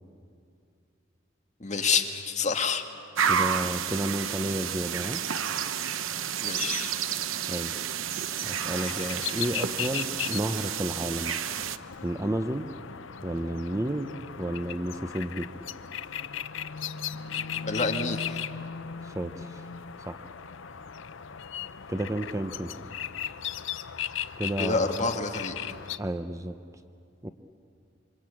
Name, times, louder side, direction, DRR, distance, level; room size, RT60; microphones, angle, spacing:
voice 1, 1.6-2.8 6.4-6.9 17.6-18.4 24.6-25.6, left 4 dB, 35° left, 4 dB, 2.0 m, -28 dB
sound 1, 3.2-11.8, right 8 dB, 90° right, 0.9 m, -30 dB
voice 2, 3.3-5.2 7.5-7.7 8.4-11.3 12.0-12.7 13.2-14.1 14.4-15.5 19.0-19.6 20.1-20.3 21.9-22.7 24.4-25.1 26.0-26.6 27.2-27.3, right 1 dB, 15° right, 8 dB, 0.7 m, -31 dB
sound 2, 8.5-26.0, left 8 dB, 70° left, 0.7 m, -37 dB
27.5 x 25.0 x 8.6 m, 2.5 s
head